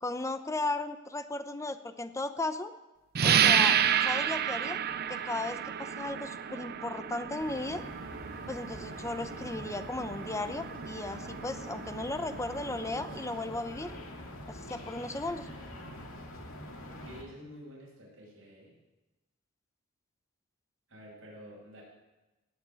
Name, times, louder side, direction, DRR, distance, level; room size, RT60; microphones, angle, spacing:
voice 1, 0.0-2.7 3.2-3.8 4.0-4.8 5.1-7.8 8.5-13.9 14.5-15.5, left 2 dB, 15° left, 10 dB, 0.7 m, -36 dB
sound 1, 3.1-13.4, right 8 dB, 50° right, 0.6 m, -31 dB
sound 2, 7.4-17.2, left 1 dB, 80° left, 2.4 m, -45 dB
voice 2, 16.9-18.7 20.9-21.8, equal, 65° right, -4 dB, 6.6 m, -49 dB
18.0 x 6.6 x 8.7 m, 1.1 s
head